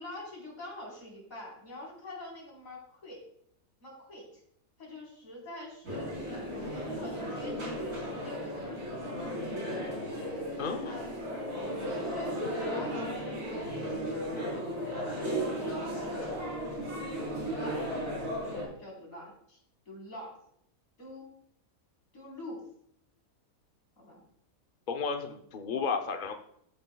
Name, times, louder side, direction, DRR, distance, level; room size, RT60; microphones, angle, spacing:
voice 1, 0.0-3.2 3.8-4.3 4.8-9.8 11.8-16.4 17.3-17.8 18.3-19.6 19.9-20.4 21.0-21.3 22.1-22.6 24.0-24.2, left 1 dB, 65° left, -2 dB, 4.4 m, -46 dB
sound 1, 5.8-18.6, equal, 65° right, 4.4 m, -35 dB
voice 2, 10.6-11.1 24.9-26.3, left 5 dB, 45° left, 5 dB, 0.7 m, -33 dB
14.0 x 8.9 x 2.3 m, 0.71 s
omnidirectional pair, 1.5 m